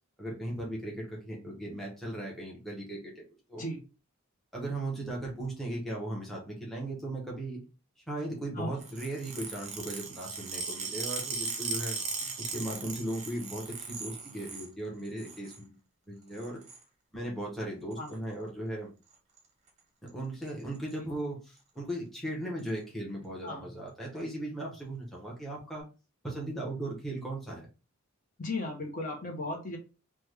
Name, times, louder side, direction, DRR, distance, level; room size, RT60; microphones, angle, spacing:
voice 1, 0.2-3.2 3.5-3.6 4.5-7.6 8.1-12.0 12.4-15.8 16.1-16.6 17.1-18.9 20.0-25.8 26.2-27.7, right 1 dB, ahead, -3 dB, 0.8 m, -37 dB
sound 1, 8.8-14.7 15.0-15.6 16.3-16.8 17.9-18.1 19.1-19.4 19.7-19.8 20.1-20.2 20.5-20.9 21.6-21.7 22.6-22.7, right 4 dB, 30° right, 0.7 m, -38 dB
voice 2, 28.4-29.8, left 2 dB, 35° left, 1 dB, 0.7 m, -36 dB
3.3 x 2.2 x 3.3 m, 0.32 s
head